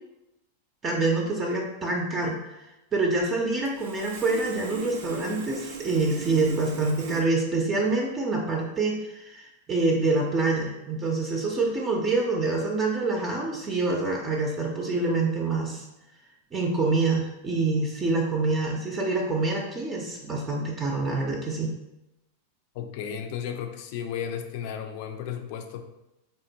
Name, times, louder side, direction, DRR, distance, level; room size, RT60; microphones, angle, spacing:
voice 1, 0.8-2.4 2.9-15.9 16.5-21.7, right 3 dB, 25° right, -1 dB, 0.5 m, -26 dB
Sawing, 3.7-7.2, right 5 dB, 80° right, 0.4 m, -40 dB
voice 2, 22.7-25.8, left 8 dB, 60° left, 6 dB, 0.4 m, -34 dB
3.6 x 2.2 x 2.7 m, 0.94 s
hypercardioid pair, 120°, 0 cm